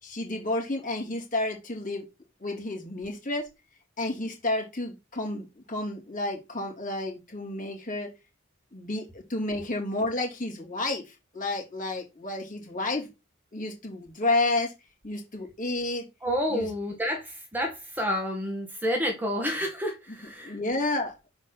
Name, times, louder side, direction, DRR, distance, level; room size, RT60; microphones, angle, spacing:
voice 1, 0.0-2.0 2.4-3.5 4.0-8.1 8.7-13.1 13.5-14.7 15.0-16.0 16.5-16.7 20.4-21.3, left 2 dB, 40° left, 3.1 m, -31 dB
voice 2, 16.2-20.6, equal, 10° right, 1.5 m, -29 dB
6.7 x 4.7 x 4.2 m
head